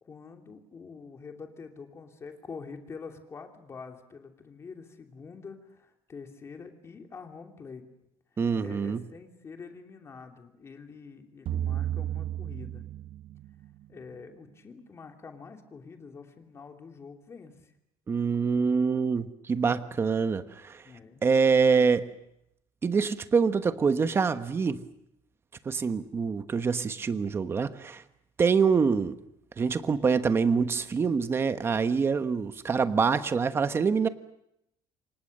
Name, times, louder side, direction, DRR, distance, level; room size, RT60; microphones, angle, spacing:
voice 1, 0.0-7.8 8.6-12.8 13.9-17.7 20.8-21.2, left 5 dB, 25° left, 4 dB, 2.9 m, -46 dB
voice 2, 8.4-9.0 18.1-20.8 21.2-22.1 22.8-24.8 25.6-28.0 28.4-29.2 29.6-34.1, right 5 dB, 20° right, 10 dB, 1.1 m, -25 dB
sound 1, 11.5-13.9, right 11 dB, 50° right, 1.0 m, -33 dB
28.5 x 25.0 x 6.7 m, 0.81 s
cardioid pair, 155°, 11 cm